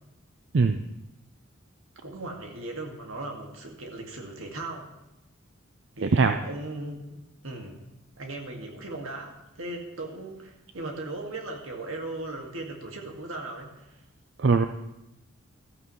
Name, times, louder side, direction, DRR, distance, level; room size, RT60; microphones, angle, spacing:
voice 1, 2.0-4.9 6.0-7.8 8.2-14.0, right 2 dB, 80° right, 1 dB, 2.0 m, -38 dB
voice 2, 6.0-6.4 14.4-14.7, right 4 dB, 55° right, 8 dB, 0.5 m, -20 dB
15.5 x 14.0 x 3.2 m, 0.91 s
head